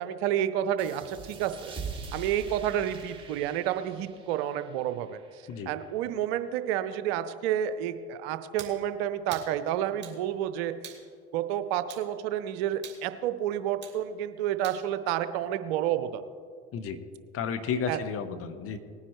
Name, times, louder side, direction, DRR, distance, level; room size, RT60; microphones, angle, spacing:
voice 1, 0.0-1.8 2.1-5.2 5.7-10.7 11.3-16.2 17.9-18.0, right 11 dB, 65° right, 11 dB, 0.8 m, -30 dB
sound 1, 0.8-6.0, right 5 dB, 15° right, 2.8 m, -43 dB
sound 2, 8.6-8.8 9.3-9.5 10.0-10.2 10.8-11.0 11.9-12.1 12.8-13.0 13.8-14.0 14.6-14.8, right 8 dB, 30° right, 2.8 m, -44 dB
voice 2, 16.7-17.0 17.3-18.8, left 6 dB, 45° left, 11 dB, 1.1 m, -32 dB
19.0 x 9.7 x 3.2 m, 2.1 s
hypercardioid pair, 75°, 33 cm